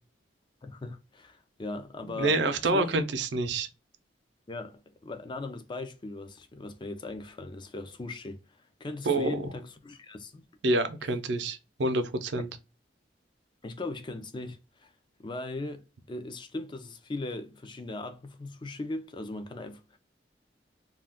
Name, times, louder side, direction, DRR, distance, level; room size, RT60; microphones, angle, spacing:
voice 1, 0.6-3.0 4.5-8.4 8.8-10.4 13.6-14.9 15.2-20.0, left 2 dB, 25° left, 0.4 m, -39 dB
voice 2, 2.1-3.7 9.1-9.4 10.6-12.5, right 2 dB, 75° right, 0.5 m, -27 dB
2.3 x 2.3 x 3.3 m
head